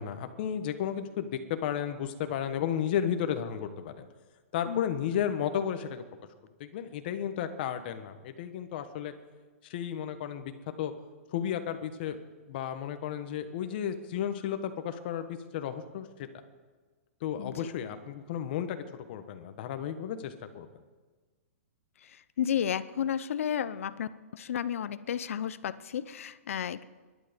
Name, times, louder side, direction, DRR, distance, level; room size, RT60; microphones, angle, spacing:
voice 1, 0.0-4.0 4.5-6.0 6.6-9.1 9.6-10.5 10.8-10.9 11.3-12.2 12.5-16.3 17.2-20.7, left 9 dB, 40° left, 8 dB, 1.4 m, -33 dB
voice 2, 17.4-17.7 22.0-26.9, left 9 dB, 70° left, 16 dB, 0.7 m, -33 dB
23.5 x 11.5 x 5.3 m, 1.3 s
hypercardioid pair, 160°, 8 cm